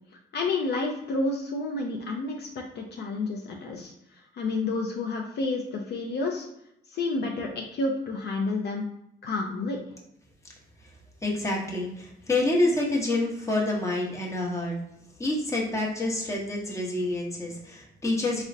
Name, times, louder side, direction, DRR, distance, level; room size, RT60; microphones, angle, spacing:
voice 1, 0.3-6.5 6.9-8.9 9.2-9.8, left 3 dB, 60° left, 1 dB, 0.5 m, -30 dB
voice 2, 11.2-14.8 15.2-18.4, left 2 dB, 15° left, -2 dB, 0.8 m, -27 dB
3.7 x 2.1 x 2.6 m, 0.78 s
cardioid pair, 90°, 20 cm